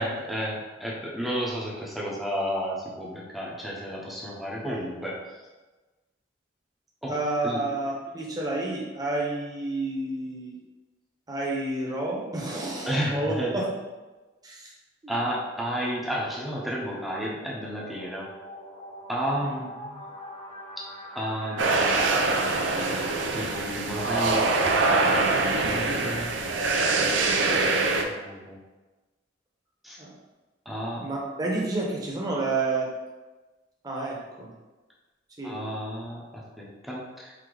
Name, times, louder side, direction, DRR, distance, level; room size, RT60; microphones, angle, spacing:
voice 1, 0.0-5.2 7.0-7.1 7.4-7.7 12.9-13.6 15.1-18.3 19.1-19.5 21.2-21.7 23.3-24.7 25.6-26.4 27.5-27.8 28.1-28.6 29.8-30.0 30.7-31.1 35.4-36.2 36.6-37.3, equal, ahead, -5 dB, 0.8 m, -32 dB
voice 2, 7.1-10.6 11.3-13.6 14.4-14.7 15.0-15.1 19.4-20.0 30.0-30.1 31.0-32.9 33.8-34.5 35.4-35.6, right 2 dB, 20° right, -3 dB, 1.0 m, -30 dB
sound 1, 15.2-21.8, equal, 30° left, 1.1 m, -44 dB
sound 2, 21.6-28.0, right 3 dB, 80° right, 0.5 m, -24 dB
4.8 x 2.8 x 3.8 m, 1.2 s
head